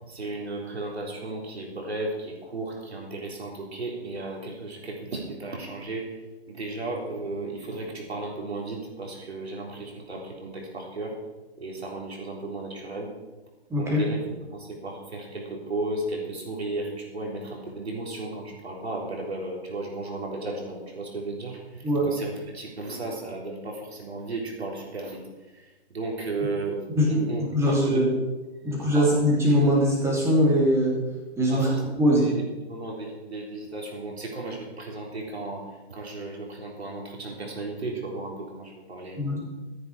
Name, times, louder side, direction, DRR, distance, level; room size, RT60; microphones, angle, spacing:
voice 1, 0.1-6.2 6.5-11.2 11.6-13.1 13.8-25.2 25.5-25.6 25.9-26.8 27.1-28.1 28.6-29.2 31.5-31.8 32.1-39.2, right 2 dB, 65° right, -1 dB, 3.9 m, -34 dB
voice 2, 13.7-14.0 21.8-22.1 27.0-28.1 28.6-31.0 31.4-31.7 31.9-32.2 39.2-39.4, equal, 10° right, -3 dB, 2.9 m, -22 dB
13.5 x 10.0 x 4.8 m, 1.2 s
figure-of-eight pair, 130°, 34 cm